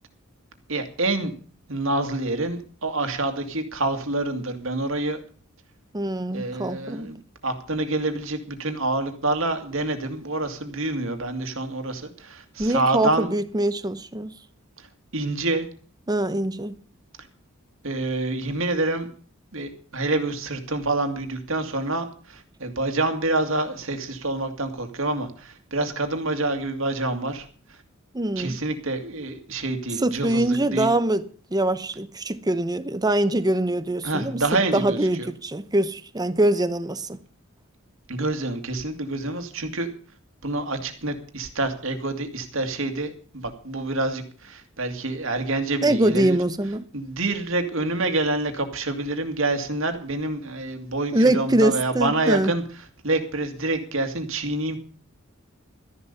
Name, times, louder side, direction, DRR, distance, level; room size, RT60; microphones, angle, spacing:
voice 1, 0.7-1.3 1.7-5.2 6.3-13.3 14.8-14.9 15.1-15.7 17.8-19.1 19.5-27.8 28.4-30.9 34.0-35.3 38.1-39.9 40.4-46.4 46.9-52.6 53.0-54.8, right 2 dB, 65° right, 2.2 m, -27 dB
voice 2, 5.9-7.1 12.6-14.3 16.1-16.8 28.1-28.6 30.0-31.2 31.5-34.4 34.7-37.2 45.8-46.8 51.1-52.5, right 1 dB, 20° right, 0.8 m, -23 dB
13.5 x 11.0 x 6.7 m
head